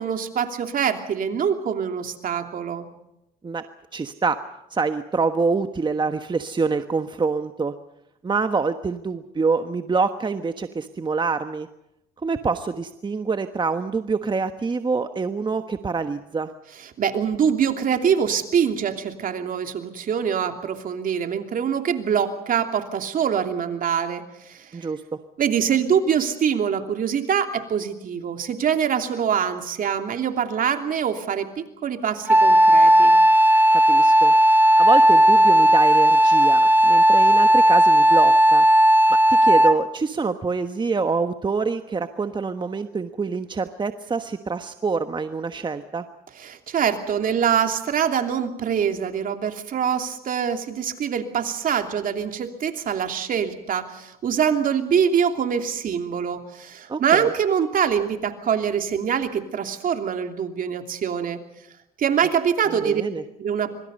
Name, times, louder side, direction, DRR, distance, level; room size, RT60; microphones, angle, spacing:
voice 1, 0.0-2.8 16.8-24.9 25.4-33.1 46.4-61.4 62.0-63.0 63.4-63.7, right 7 dB, 55° right, 6 dB, 2.9 m, -24 dB
voice 2, 3.9-4.4 4.7-7.7 8.2-11.7 12.2-16.5 24.7-25.0 33.9-34.3 34.8-38.7 39.3-46.0 56.9-57.3 62.8-63.2, right 4 dB, 30° right, 8 dB, 1.3 m, -26 dB
Wind instrument woodwind instrument, 32.3-39.9, right 1 dB, 10° right, 1.1 m, -15 dB
25.5 x 24.0 x 5.5 m, 0.86 s
supercardioid pair, 75°, 17 cm